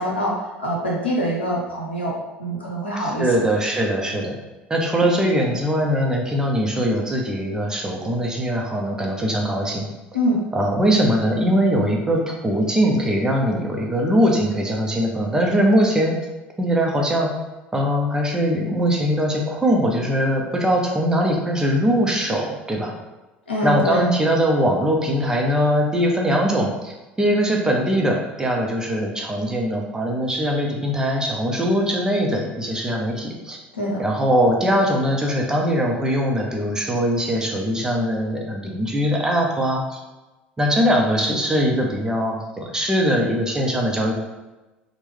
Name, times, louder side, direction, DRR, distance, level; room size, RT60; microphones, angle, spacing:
voice 1, 0.0-2.1 2.4-3.3 10.1-10.4 23.5-24.1 33.7-34.0, equal, 85° left, -4 dB, 0.7 m, -24 dB
voice 2, 3.0-4.4 4.7-9.9 10.5-16.2 16.6-17.3 17.7-22.9 23.6-33.6 34.0-40.0 40.6-44.2, equal, 10° right, 0 dB, 0.6 m, -21 dB
3.0 x 2.1 x 3.3 m, 1.1 s
figure-of-eight pair, 70°, 6 cm